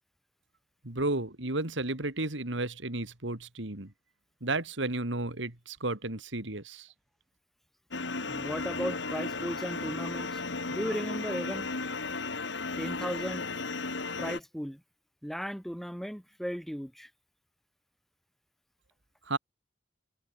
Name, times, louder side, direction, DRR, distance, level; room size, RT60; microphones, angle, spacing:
voice 1, 0.8-3.9 4.4-6.9 19.3-19.4, right 2 dB, 75° right, 2.7 m, -33 dB
sound 1, 7.9-14.4, left 3 dB, 70° left, 2.8 m, -35 dB
voice 2, 8.3-10.4 10.7-11.7 12.8-13.5 14.2-14.8 15.2-17.1, equal, ahead, 2.0 m, -36 dB
head